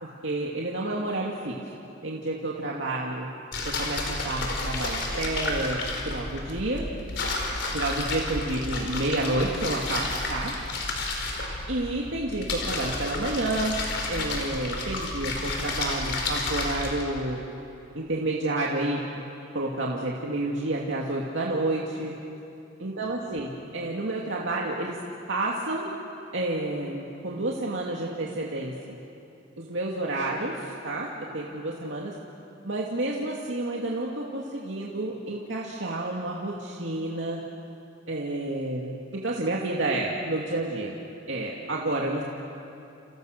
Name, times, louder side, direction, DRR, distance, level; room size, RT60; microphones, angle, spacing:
voice 1, 0.0-1.5 2.0-3.3 3.7-6.9 7.7-10.5 11.7-13.8 14.1-17.4 17.9-19.0 19.5-22.2 22.8-25.0 25.3-25.9 26.3-29.0 29.6-32.2 32.6-37.4 38.1-41.0 41.3-42.2, right 2 dB, 75° right, -3 dB, 2.4 m, -30 dB
sound 1, 3.5-17.1, left 2 dB, 65° left, 4.8 m, -31 dB
29.5 x 29.0 x 6.7 m, 2.8 s
head